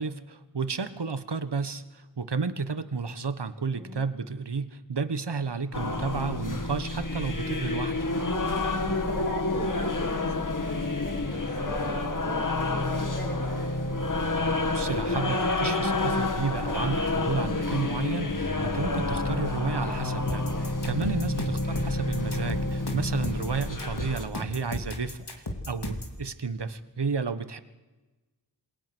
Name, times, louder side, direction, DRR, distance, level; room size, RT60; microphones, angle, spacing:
voice 1, 0.0-8.0 14.7-27.6, right 4 dB, 75° right, 12 dB, 1.4 m, -32 dB
voice 2, 3.7-4.1 9.1-13.7 21.4-21.7, left 1 dB, 25° left, 0 dB, 7.0 m, -41 dB
sound 1, 5.7-24.2, left 2 dB, 45° left, 2.0 m, -29 dB
sound 2, 20.3-26.2, left 1 dB, 65° left, 3.3 m, -35 dB
27.5 x 22.0 x 6.2 m, 1.2 s
wide cardioid pair, 50°, 42 cm